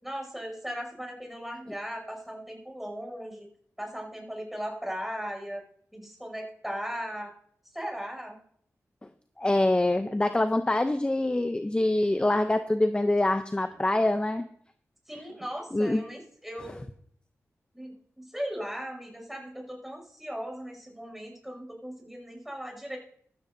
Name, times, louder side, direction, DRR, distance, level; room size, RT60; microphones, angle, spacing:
voice 1, 0.0-3.5 3.8-5.6 5.9-7.3 7.7-8.4 15.1-16.9 17.7-23.0, equal, 5° right, 1 dB, 6.1 m, -37 dB
voice 2, 9.4-14.4 15.7-16.0, left 1 dB, 20° left, 9 dB, 0.6 m, -25 dB
15.0 x 12.5 x 2.7 m, 0.63 s
cardioid pair, 55°, 6 cm